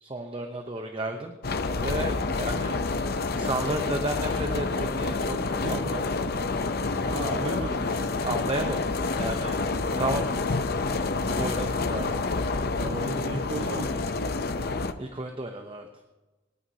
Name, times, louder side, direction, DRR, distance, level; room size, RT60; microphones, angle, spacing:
voice 1, 0.0-1.4 1.8-2.8 3.3-6.1 8.2-8.9 9.2-9.6 10.0-10.3 11.2-12.3 15.0-15.9, right 2 dB, 25° right, 4 dB, 0.8 m, -32 dB
sound 1, 1.4-14.9, left 3 dB, 50° left, 0.6 m, -28 dB
voice 2, 5.4-5.9 7.0-8.1 9.9-10.2 12.8-14.3, right 2 dB, 75° right, 1 dB, 1.5 m, -35 dB
27.5 x 9.3 x 2.8 m, 1.1 s
head